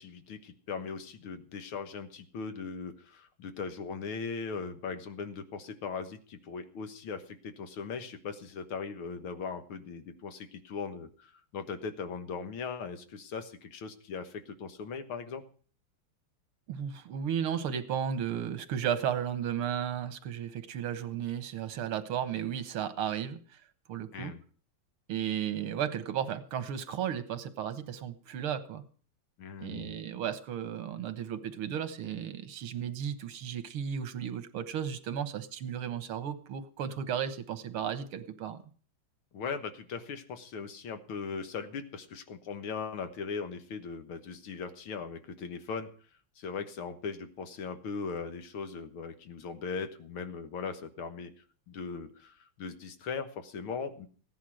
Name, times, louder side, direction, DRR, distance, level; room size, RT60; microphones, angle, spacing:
voice 1, 0.0-15.4 24.1-24.4 29.4-30.0 39.3-45.9 46.4-51.3 51.7-54.1, left 5 dB, 80° left, 9 dB, 2.2 m, -39 dB
voice 2, 16.7-23.4 23.9-24.3 25.1-28.8 29.6-38.6, right 9 dB, 85° right, 11 dB, 2.1 m, -34 dB
16.0 x 10.5 x 6.3 m, 0.43 s
omnidirectional pair, 2.3 m